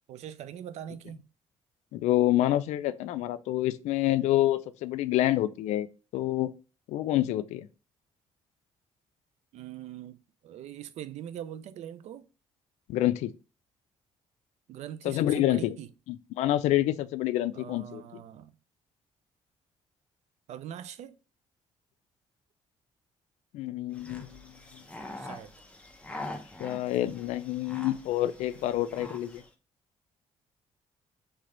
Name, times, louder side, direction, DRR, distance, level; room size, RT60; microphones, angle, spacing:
voice 1, 0.1-1.2 9.5-12.3 14.7-15.9 16.8-16.9 17.5-18.5 20.5-21.2 25.2-25.5, right 10 dB, 70° right, 0.5 m, -42 dB
voice 2, 1.9-5.9 6.1-6.6 6.9-7.7 12.9-13.3 15.0-15.8 16.1-18.0 23.5-24.8 26.6-29.4, left 14 dB, 85° left, 0.4 m, -27 dB
sound 1, 23.9-29.5, left 2 dB, 10° left, 0.8 m, -44 dB
3.3 x 3.3 x 3.8 m
cardioid pair, 90°, 12 cm